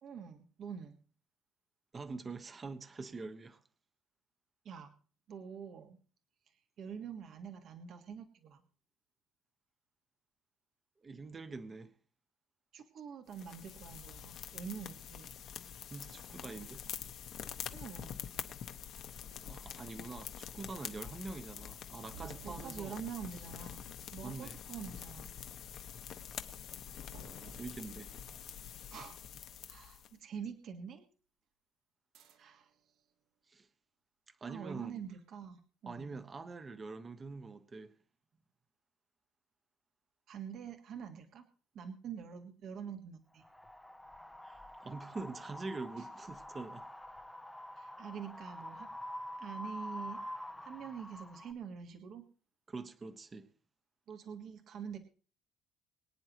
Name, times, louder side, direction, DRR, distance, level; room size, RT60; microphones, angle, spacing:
voice 1, 0.0-1.0 4.6-5.0 5.3-6.0 6.5-8.6 12.7-15.3 17.7-18.2 22.4-23.8 24.1-25.3 28.9-29.2 29.7-31.1 32.4-32.7 34.4-36.2 40.3-41.5 41.7-43.4 46.0-46.1 47.8-48.9 49.4-50.2 50.6-52.2 54.1-55.0, right 7 dB, 50° right, 1.5 m, -46 dB
voice 2, 1.9-3.6 11.0-11.9 15.9-16.9 19.5-23.0 24.2-24.6 27.5-28.2 33.5-33.7 34.4-35.0 35.9-37.9 44.4-46.9 52.7-53.5, right 3 dB, 20° right, 1.1 m, -45 dB
sound 1, 13.3-30.1, left 9 dB, 50° left, 1.3 m, -46 dB
sound 2, 22.1-24.9 27.1-29.8 32.1-32.8, right 4 dB, 70° right, 2.7 m, -57 dB
Wind, 43.4-51.5, left 1 dB, 5° left, 0.8 m, -46 dB
23.5 x 9.7 x 3.0 m
cardioid pair, 155°, 0 cm